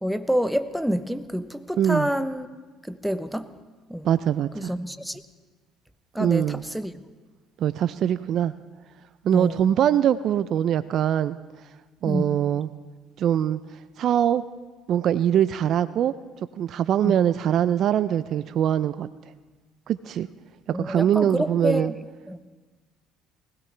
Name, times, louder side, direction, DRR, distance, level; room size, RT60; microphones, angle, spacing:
voice 1, 0.0-2.5 2.9-3.5 3.9-4.1 4.5-5.2 6.1-7.0 9.3-9.7 12.0-12.4 17.0-17.2 20.7-21.9 22.3-22.4, equal, ahead, 12 dB, 0.8 m, -27 dB
voice 2, 1.8-2.1 4.0-4.7 6.2-6.6 7.6-8.5 9.2-11.4 12.0-12.7 13.2-13.6 14.0-14.4 14.9-16.1 16.6-19.1 19.9-20.3 20.7-21.9, right 10 dB, 60° right, 14 dB, 0.4 m, -22 dB
20.0 x 16.5 x 3.3 m, 1.3 s
hypercardioid pair, 65°, 0 cm